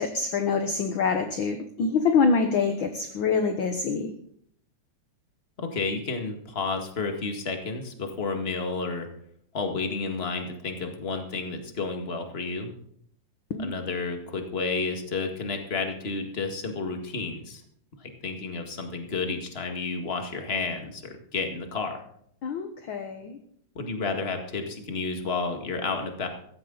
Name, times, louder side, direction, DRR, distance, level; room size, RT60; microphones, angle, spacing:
voice 1, 0.0-4.1 13.5-13.7 22.4-23.4, left 5 dB, 55° left, 6 dB, 1.4 m, -25 dB
voice 2, 5.6-9.1 9.5-12.7 13.6-17.6 18.0-22.0 23.7-26.3, left 4 dB, 25° left, 4 dB, 1.8 m, -31 dB
15.5 x 15.5 x 4.0 m, 0.66 s
omnidirectional pair, 3.4 m